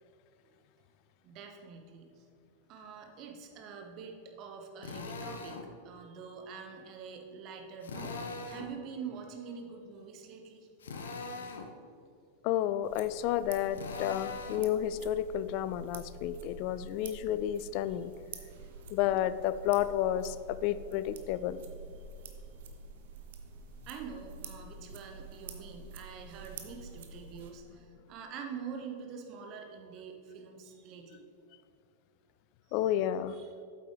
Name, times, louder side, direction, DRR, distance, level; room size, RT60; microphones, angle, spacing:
voice 1, 1.2-2.3 2.7-10.7 18.8-19.0 22.3-22.4 23.8-31.2 32.7-32.9 33.3-33.5, right 6 dB, 40° right, 3 dB, 1.1 m, -45 dB
Drill, 4.8-5.7 7.8-8.7 10.8-11.7 13.7-14.7, left 4 dB, 65° left, 0.7 m, -40 dB
voice 2, 12.4-18.1 18.9-21.6 32.7-33.4, left 11 dB, 45° left, 14 dB, 0.3 m, -31 dB
sound 1, 12.8-27.5, right 3 dB, 55° right, 0.8 m, -48 dB
8.6 x 8.0 x 3.4 m, 2.4 s
figure-of-eight pair, 90°, 0 cm